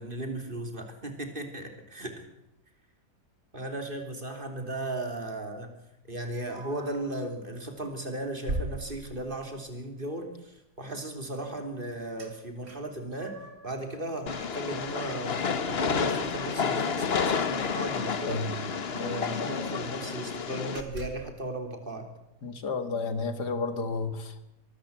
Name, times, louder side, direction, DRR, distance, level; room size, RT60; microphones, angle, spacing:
voice 1, 0.0-2.2 3.5-5.7 6.1-13.4 13.6-18.5 18.9-22.1, right 1 dB, 30° right, 5 dB, 3.5 m, -36 dB
sound 1, 6.5-7.2 7.7-7.9 8.5-9.6 12.2-12.3 12.6-13.7 14.1-15.9 16.3-16.4 16.7-16.9 18.0-18.1 18.3-18.4 18.9-19.7 20.2-20.3 20.7-21.4, right 1 dB, 60° right, 3.9 m, -41 dB
Train, 14.3-20.8, left 6 dB, 40° left, 1.3 m, -30 dB
voice 2, 22.4-24.4, left 4 dB, 75° left, 10 dB, 2.4 m, -32 dB
24.0 x 13.5 x 8.2 m, 0.88 s
omnidirectional pair, 1.8 m